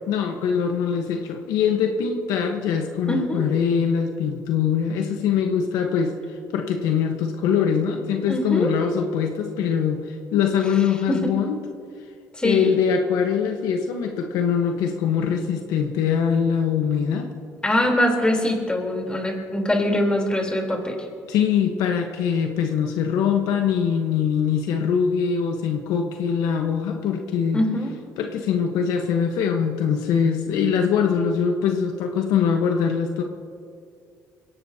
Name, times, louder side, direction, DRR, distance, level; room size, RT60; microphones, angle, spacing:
voice 1, 0.1-11.6 12.4-17.3 21.3-27.6 28.2-33.2, left 7 dB, 80° left, 4 dB, 1.2 m, -23 dB
voice 2, 3.1-3.5 8.2-8.7 11.1-11.4 12.3-12.8 17.6-21.1 27.5-27.9, left 1 dB, 15° left, 1 dB, 3.7 m, -23 dB
22.0 x 17.0 x 2.9 m, 2.3 s
supercardioid pair, 85°, 6 cm